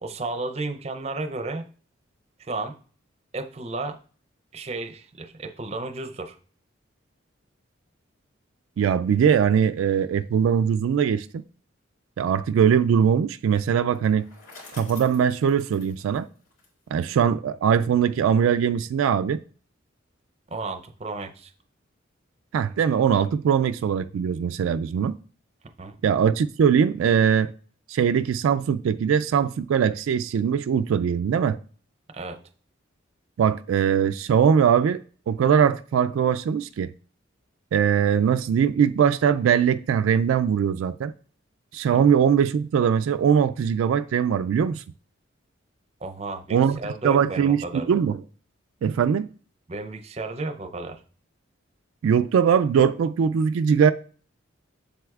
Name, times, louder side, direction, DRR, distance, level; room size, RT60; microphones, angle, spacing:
voice 1, 0.0-1.6 2.4-2.8 3.3-4.0 4.5-6.4 20.5-21.5 25.8-25.9 32.1-32.4 41.9-42.1 46.0-47.9 49.7-51.0, right 2 dB, 30° right, 0.5 m, -33 dB
voice 2, 8.8-11.4 12.2-14.3 14.8-16.3 16.9-19.4 22.5-25.2 26.0-27.5 27.9-31.6 33.4-35.0 35.3-36.9 37.7-41.1 41.7-44.8 46.5-46.8 47.0-48.2 48.8-49.3 52.0-53.9, right 7 dB, 85° right, 0.3 m, -21 dB
Bicycle, 13.9-17.1, left 3 dB, 70° left, 3.4 m, -48 dB
7.7 x 6.8 x 2.4 m
head